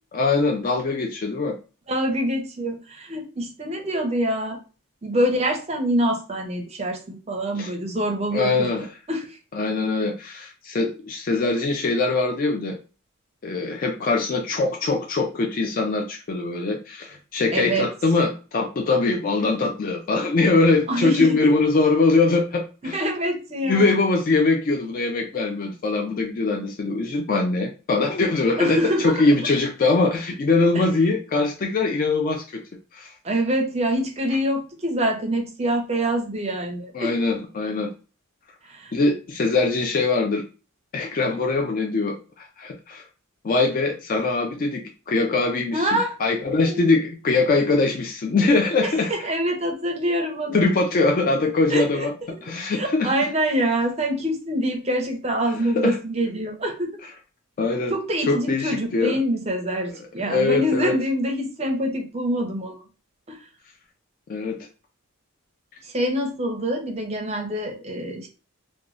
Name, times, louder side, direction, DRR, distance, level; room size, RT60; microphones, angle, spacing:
voice 1, 0.1-1.6 7.6-7.7 8.3-8.9 9.5-12.8 13.4-23.0 23.7-32.6 32.9-33.1 36.9-37.9 38.9-40.4 40.9-43.0 43.4-49.1 50.5-52.1 52.4-53.1 55.8-56.0 57.6-57.9 58.3-59.2 60.2-61.0 64.3-64.6, left 3 dB, 40° left, 3 dB, 0.3 m, -22 dB
voice 2, 1.9-4.6 5.0-9.4 17.5-17.9 20.9-21.5 22.8-23.9 28.6-29.3 30.7-30.8 33.2-37.1 38.6-38.9 45.7-46.2 46.6-46.8 48.8-50.6 51.7-52.1 52.4-52.5 52.7-56.9 57.9-62.8 63.3-63.4 65.8-68.3, equal, 30° right, 3 dB, 0.5 m, -25 dB
3.0 x 2.2 x 2.4 m, 0.34 s
head